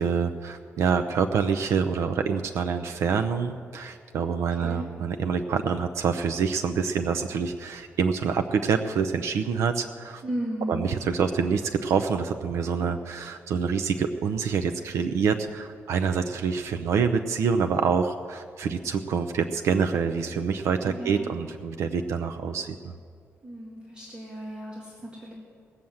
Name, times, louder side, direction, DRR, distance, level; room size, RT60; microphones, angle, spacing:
voice 1, 0.0-10.2 10.7-22.9, right 6 dB, 75° right, 7 dB, 0.6 m, -26 dB
voice 2, 4.5-4.9 10.2-10.8 20.8-21.3 23.4-25.3, right 1 dB, 20° right, -4 dB, 2.0 m, -35 dB
18.5 x 7.2 x 7.7 m, 2.3 s
wide cardioid pair, 160°, 5 cm